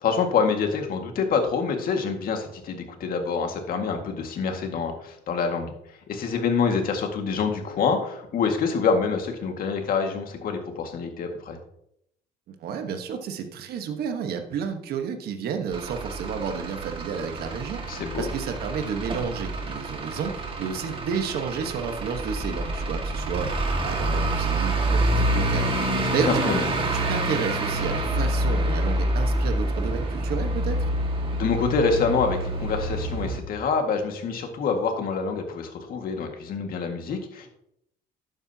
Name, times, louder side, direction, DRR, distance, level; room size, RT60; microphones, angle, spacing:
voice 1, 0.0-5.7 6.1-11.6 17.9-18.3 26.1-26.7 31.3-37.5, left 5 dB, 60° left, 4 dB, 2.0 m, -26 dB
voice 2, 12.6-23.5 23.8-25.7 26.1-26.5 26.9-30.9, right 6 dB, 70° right, 6 dB, 1.3 m, -31 dB
Truck / Idling, 15.7-33.4, right 1 dB, 30° right, 1.9 m, -27 dB
12.0 x 8.9 x 2.9 m, 0.75 s
cardioid pair, 110°, 17 cm